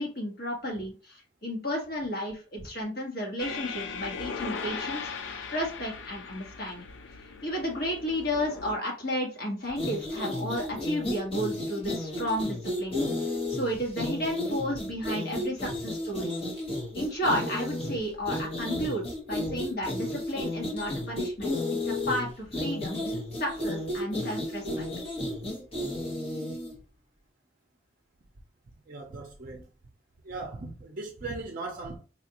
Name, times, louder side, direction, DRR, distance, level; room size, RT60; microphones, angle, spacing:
voice 1, 0.0-6.9 7.4-16.3 16.9-21.5 21.8-23.0 23.4-24.8, equal, 50° left, 1.5 m, -33 dB
sound 1, 3.4-8.7, left 5 dB, 75° left, 0.5 m, -38 dB
sound 2, 9.7-26.8, left 1 dB, 30° left, 1.2 m, -33 dB
voice 2, 28.9-29.7 30.2-32.0, right 3 dB, 45° right, 0.5 m, -39 dB
4.2 x 2.5 x 2.9 m
head